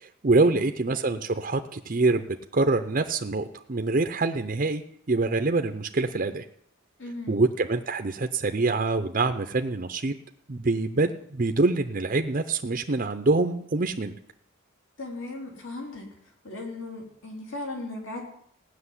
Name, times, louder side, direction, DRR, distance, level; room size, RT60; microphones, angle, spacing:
voice 1, 0.0-6.4 7.3-10.1 10.5-14.2, right 3 dB, 40° right, 6 dB, 0.6 m, -25 dB
voice 2, 7.0-7.4 15.0-16.1 16.4-18.2, left 2 dB, 70° left, 0 dB, 3.8 m, -37 dB
16.5 x 6.5 x 9.7 m, 0.68 s
head